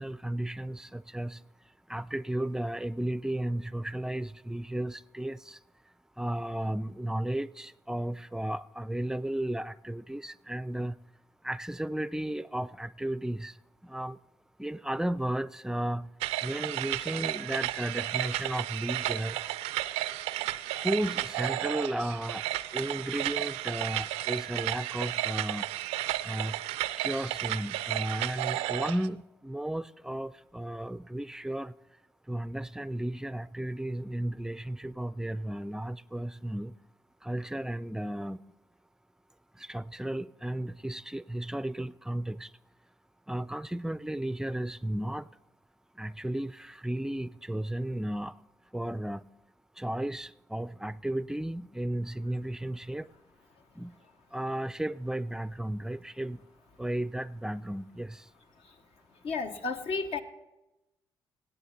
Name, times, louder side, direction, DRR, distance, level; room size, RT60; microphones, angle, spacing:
voice 1, 0.0-1.4 1.9-5.6 6.2-11.0 11.4-13.6 13.8-14.2 14.6-16.1 16.4-19.4 20.8-22.5 22.7-25.7 26.2-26.6 27.0-31.7 32.3-36.7 37.2-38.4 39.6-42.5 43.3-45.3 46.0-48.4 48.7-49.2 49.8-53.1 53.8-54.0 54.3-56.4 56.8-58.3, right 1 dB, 5° right, 0.4 m, -34 dB
sound 1, 16.2-29.1, right 15 dB, 80° right, 0.4 m, -33 dB
voice 2, 59.2-60.2, left 4 dB, 65° left, 1.0 m, -32 dB
17.0 x 8.3 x 4.0 m
hypercardioid pair, 45°, 11 cm